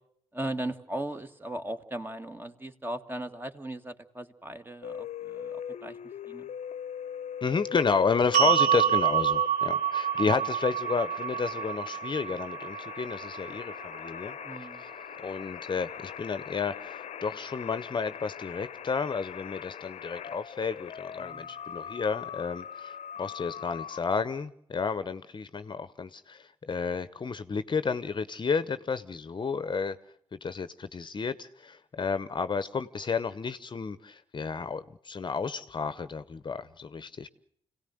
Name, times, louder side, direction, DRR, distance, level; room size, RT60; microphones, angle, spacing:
voice 1, 0.3-6.0 6.3-6.5 10.2-10.3 14.4-14.8 21.2-21.5, right 1 dB, 15° right, 7 dB, 1.9 m, -38 dB
sound 1, 4.8-24.0, left 9 dB, 70° left, 0.8 m, -41 dB
voice 2, 7.4-14.9 15.2-30.0 30.4-37.3, left 5 dB, 40° left, 13 dB, 0.9 m, -31 dB
sound 2, 8.3-14.5, right 9 dB, 90° right, 1.1 m, -28 dB
26.5 x 18.0 x 7.9 m, 0.70 s
supercardioid pair, 60°, 12 cm